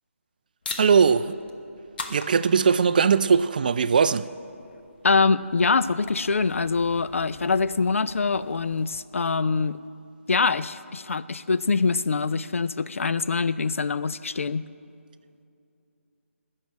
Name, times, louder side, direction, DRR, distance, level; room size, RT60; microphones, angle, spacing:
sound 1, 0.6-9.0, left 3 dB, 40° left, 1.1 m, -43 dB
voice 1, 0.8-1.4 2.1-4.3, right 6 dB, 35° right, 14 dB, 0.4 m, -20 dB
voice 2, 5.0-9.8 10.3-14.7, left 4 dB, 65° left, 14 dB, 0.5 m, -24 dB
17.0 x 6.6 x 8.5 m, 2.6 s
figure-of-eight pair, 155°, 8 cm